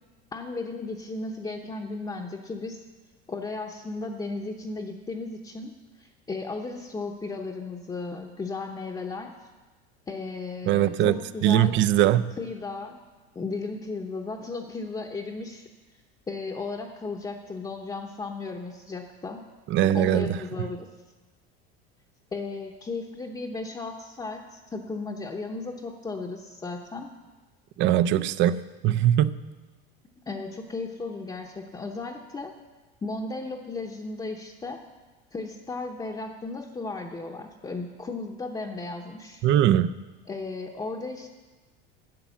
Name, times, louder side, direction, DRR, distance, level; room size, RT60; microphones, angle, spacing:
voice 1, 0.3-2.8 3.3-5.7 6.0-9.3 10.1-11.8 12.4-13.0 13.3-15.7 16.3-19.4 19.9-20.9 22.3-27.1 30.3-32.5 33.0-34.8 35.3-39.4 40.3-41.3, left 3 dB, 15° left, 0.8 m, -35 dB
voice 2, 10.7-12.3 19.7-20.3 27.8-29.3 39.4-39.9, right 11 dB, 40° right, 0.5 m, -21 dB
11.5 x 7.2 x 7.1 m
supercardioid pair, 120°, 30 cm